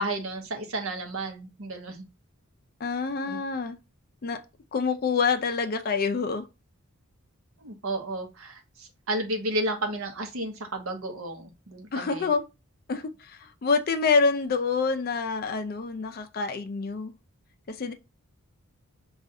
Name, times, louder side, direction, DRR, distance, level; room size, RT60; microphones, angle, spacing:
voice 1, 0.0-2.0 3.3-3.4 7.6-12.3, right 1 dB, 65° right, 0.8 m, -32 dB
voice 2, 2.8-3.8 4.2-4.4 4.7-6.4 11.9-12.4 12.9-17.1 17.7-17.9, left 4 dB, 40° left, 0.4 m, -27 dB
5.2 x 2.4 x 2.6 m
head